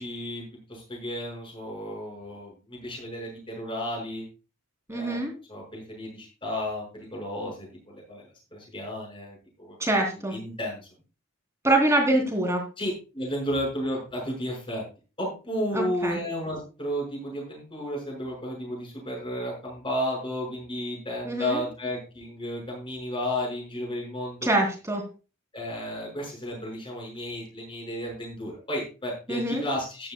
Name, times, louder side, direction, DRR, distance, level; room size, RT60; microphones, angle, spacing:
voice 1, 0.0-4.2 4.9-5.2 5.5-8.2 8.5-9.8 10.3-10.9 12.8-14.8 15.2-24.5 25.5-30.1, equal, 25° left, 0 dB, 5.7 m, -33 dB
voice 2, 4.9-5.3 9.8-10.3 11.6-12.6 15.7-16.2 21.2-21.6 24.4-25.0 29.3-29.6, right 1 dB, 15° right, 2 dB, 3.1 m, -24 dB
14.0 x 10.5 x 2.3 m, 0.33 s
head